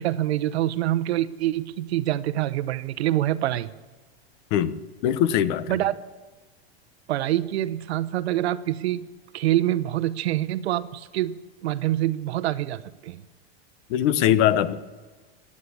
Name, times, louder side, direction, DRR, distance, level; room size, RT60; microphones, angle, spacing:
voice 1, 0.0-3.7 5.7-5.9 7.1-9.1 9.3-13.2, right 14 dB, 85° right, 15 dB, 0.9 m, -26 dB
voice 2, 5.0-5.7 13.9-14.7, left 11 dB, 55° left, 15 dB, 1.0 m, -21 dB
16.5 x 9.7 x 8.4 m, 1.3 s
supercardioid pair, 135°, 31 cm